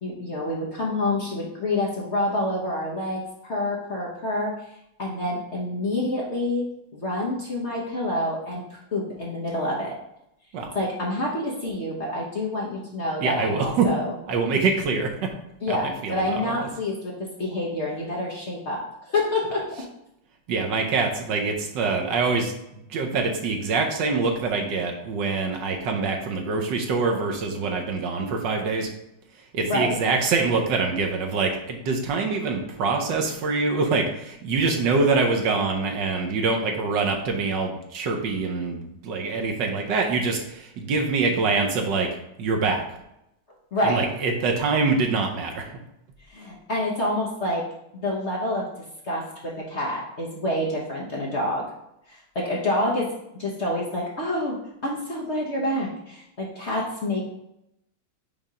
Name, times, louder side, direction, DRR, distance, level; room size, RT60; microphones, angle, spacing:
voice 1, 0.0-4.5 5.0-6.6 6.9-10.0 10.7-14.1 15.6-18.8 19.1-19.7 29.6-29.9 43.7-44.0 46.3-47.7 47.9-48.7 49.0-51.7 52.1-53.1 53.4-54.6 54.8-57.2, left 1 dB, 40° left, -4 dB, 1.1 m, -27 dB
voice 2, 13.2-13.9 14.3-15.3 15.7-16.5 20.5-22.5 22.9-28.9 29.5-42.1 42.4-42.8 43.8-45.7, right 4 dB, 65° right, 2 dB, 1.4 m, -25 dB
5.6 x 3.4 x 5.0 m, 0.82 s
omnidirectional pair, 2.2 m